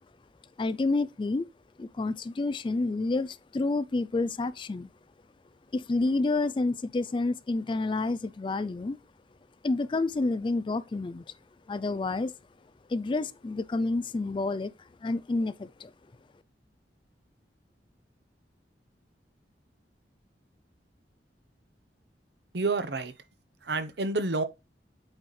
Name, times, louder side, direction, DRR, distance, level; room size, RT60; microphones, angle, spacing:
voice 1, 0.6-1.4 1.8-4.9 5.7-9.0 9.6-11.3 11.7-12.3 12.9-14.7 15.0-15.9, left 3 dB, 30° left, 0.3 m, -29 dB
voice 2, 22.5-23.1 23.6-24.4, right 3 dB, 70° right, 0.9 m, -29 dB
8.9 x 4.2 x 3.2 m
head